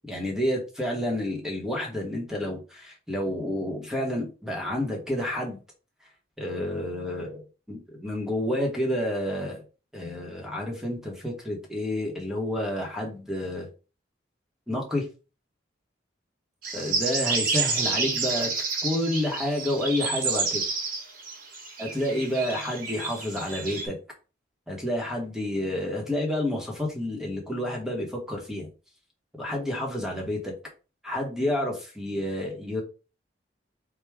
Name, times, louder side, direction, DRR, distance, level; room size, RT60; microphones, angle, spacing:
voice 1, 0.1-5.6 6.4-7.4 7.7-9.6 9.9-13.7 14.7-15.1 16.7-18.5 18.8-20.6 21.8-24.0 24.7-28.7 29.4-30.5 31.0-32.8, left 1 dB, ahead, -1 dB, 0.9 m, -29 dB
sound 1, 16.6-23.9, right 4 dB, 45° right, 1.0 m, -29 dB
4.5 x 2.2 x 3.4 m, 0.33 s
head